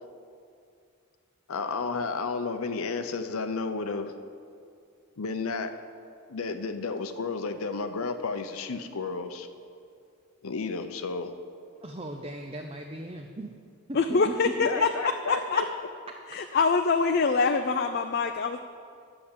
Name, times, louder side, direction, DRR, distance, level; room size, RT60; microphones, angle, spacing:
voice 1, 1.5-4.1 5.2-5.7 6.3-9.5 10.4-11.3 14.1-14.3 14.6-15.4, left 4 dB, 80° left, 8 dB, 0.7 m, -32 dB
voice 2, 11.8-13.5 13.9-15.6, right 2 dB, 25° right, 3 dB, 0.5 m, -38 dB
voice 3, 13.9-14.9 15.3-15.6 16.3-18.6, left 4 dB, 45° left, 6 dB, 0.4 m, -24 dB
10.5 x 7.1 x 8.6 m, 2.3 s
head